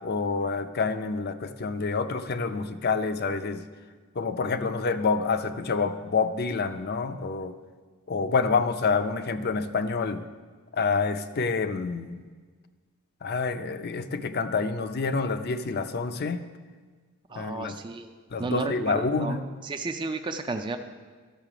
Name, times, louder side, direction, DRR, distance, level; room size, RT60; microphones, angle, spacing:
voice 1, 0.0-3.7 4.1-7.6 8.1-10.3 10.7-12.2 13.2-16.5 17.4-17.8 18.3-19.4, left 4 dB, 45° left, 10 dB, 0.5 m, -27 dB
voice 2, 17.3-18.1 18.4-20.8, right 3 dB, 20° right, 6 dB, 0.4 m, -33 dB
12.5 x 6.5 x 4.9 m, 1.5 s
head